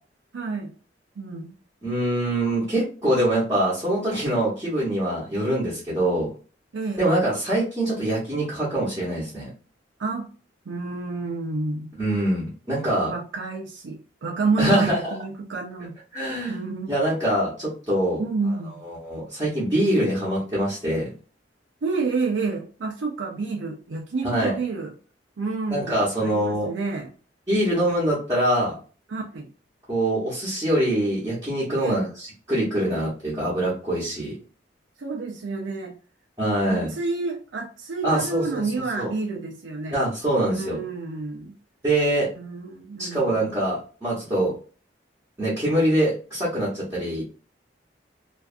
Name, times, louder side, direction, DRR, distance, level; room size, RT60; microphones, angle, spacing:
voice 1, 0.3-0.7 1.2-1.5 6.7-7.0 10.0-10.3 10.7-11.9 13.1-15.9 16.5-16.9 18.2-18.8 21.8-24.9 25.4-27.1 29.1-29.5 31.7-32.1 35.0-35.9 36.7-40.0 40.5-41.5 42.3-43.5, right 4 dB, 85° right, 0 dB, 0.5 m, -29 dB
voice 2, 1.8-6.3 7.0-9.5 12.0-13.1 14.6-15.1 16.1-16.6 16.9-18.2 18.8-21.1 24.2-24.6 25.7-26.7 27.5-28.8 29.9-34.4 36.4-36.9 38.0-38.6 39.0-39.1 39.9-40.8 41.8-42.3 43.0-44.5 45.4-47.2, right 1 dB, 20° right, -9 dB, 0.9 m, -24 dB
2.6 x 2.3 x 2.4 m, 0.38 s
head